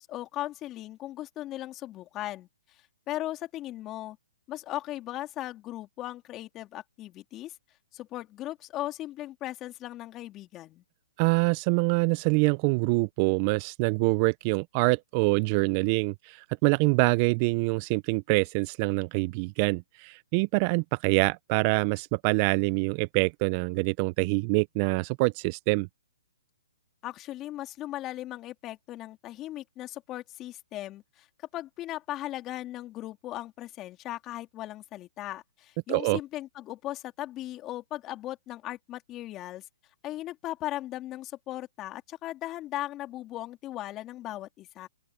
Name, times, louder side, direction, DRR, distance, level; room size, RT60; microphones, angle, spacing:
voice 1, 0.0-4.2 4.5-7.6 7.9-10.8 27.0-31.3 31.5-39.6 40.0-44.9, left 14 dB, 25° left, 3.4 m, -38 dB
voice 2, 11.2-25.9 35.9-36.2, right 29 dB, 35° right, 0.5 m, -25 dB
hypercardioid pair, 145°, 0 cm